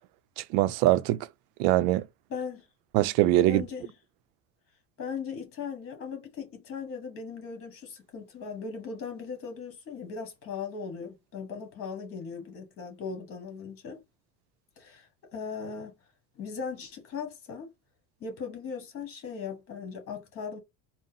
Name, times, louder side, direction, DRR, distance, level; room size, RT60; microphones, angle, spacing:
voice 1, 0.4-1.3 1.6-2.0 2.9-3.6, right 15 dB, 90° right, 0.5 m, -23 dB
voice 2, 2.3-2.6 3.4-3.9 5.0-14.0 14.8-15.9 16.3-17.7 18.2-20.6, left 5 dB, 35° left, 1.4 m, -38 dB
3.9 x 2.0 x 3.9 m
cardioid pair, 175°, 39 cm